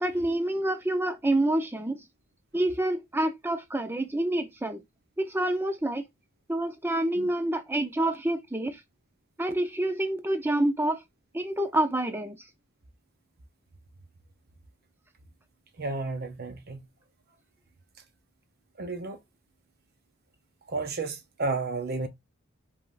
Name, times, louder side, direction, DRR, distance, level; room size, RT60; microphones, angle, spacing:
voice 1, 0.0-2.0 2.5-4.8 5.2-6.0 6.5-8.8 9.4-11.0 11.3-12.4, right 1 dB, 10° right, 0.6 m, -27 dB
voice 2, 15.8-16.9 18.8-19.2 20.7-22.1, right 3 dB, 45° right, 0.8 m, -32 dB
5.3 x 3.5 x 2.5 m
head